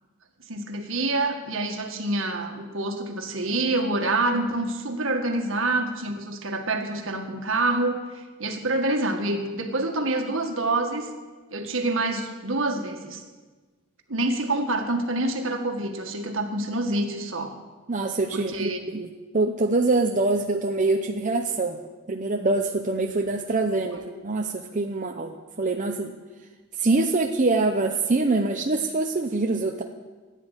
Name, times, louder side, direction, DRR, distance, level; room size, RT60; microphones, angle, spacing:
voice 1, 0.5-11.1 11.5-13.2 14.1-17.5 18.3-18.8 23.9-24.1, right 2 dB, 65° right, 4 dB, 1.8 m, -27 dB
voice 2, 17.9-21.8 22.1-26.1 26.8-29.8, right 3 dB, 35° right, 2 dB, 0.7 m, -24 dB
15.0 x 10.0 x 8.3 m, 1.3 s
head